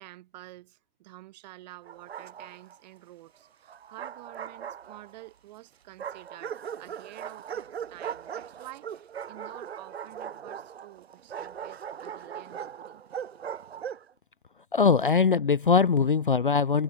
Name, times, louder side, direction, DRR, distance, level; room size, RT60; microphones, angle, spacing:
voice 1, 0.0-13.0, right 17 dB, 25° right, 7.5 m, -49 dB
Bark, 1.9-2.8 3.7-5.3 6.0-14.1, right 8 dB, 45° right, 0.6 m, -39 dB
voice 2, 14.7-16.8, left 5 dB, 35° left, 0.5 m, -22 dB
hypercardioid pair, 175°, 46 cm